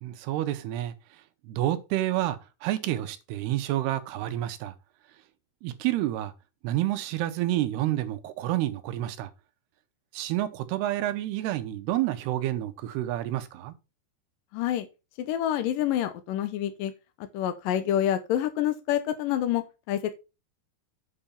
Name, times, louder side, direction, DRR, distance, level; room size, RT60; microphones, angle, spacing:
voice 1, 0.0-0.9 1.4-4.7 5.6-6.3 6.6-9.3 10.1-13.7, right 14 dB, 80° right, 2.9 m, -29 dB
voice 2, 14.5-14.9 15.2-16.9 17.3-20.1, left 11 dB, 75° left, 2.1 m, -27 dB
8.0 x 5.1 x 5.6 m
omnidirectional pair, 4.8 m